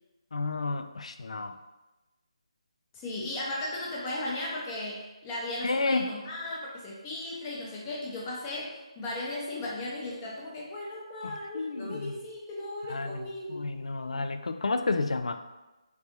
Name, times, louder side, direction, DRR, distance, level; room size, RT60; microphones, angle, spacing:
voice 1, 0.3-1.6 5.6-6.1 11.2-12.1 12.9-15.4, left 3 dB, 85° left, 8 dB, 0.3 m, -31 dB
voice 2, 2.9-13.7, left 1 dB, 20° left, -4 dB, 0.6 m, -36 dB
3.4 x 3.3 x 2.9 m, 1.1 s
figure-of-eight pair, 165°, 3 cm